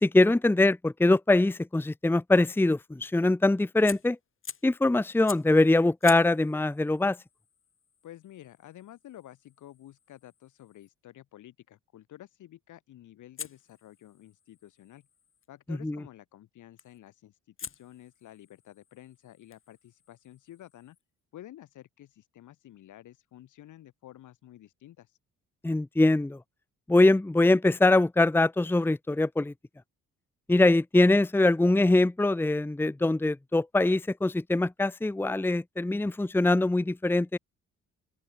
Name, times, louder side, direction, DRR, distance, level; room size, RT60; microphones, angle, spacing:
voice 1, 0.0-4.2 4.6-7.2 15.8-16.0 25.6-26.4 26.9-29.5 30.5-37.4, left 2 dB, 5° left, 0.8 m, -23 dB
Fire, 3.8-4.8 5.3-5.6 6.0-10.9 13.4-15.5 16.8-17.1 17.6-21.0, left 7 dB, 45° left, 2.8 m, -47 dB
voice 2, 8.0-15.0 15.5-21.0 21.3-25.2, left 13 dB, 80° left, 5.0 m, -51 dB
open air
cardioid pair, 90°, 30 cm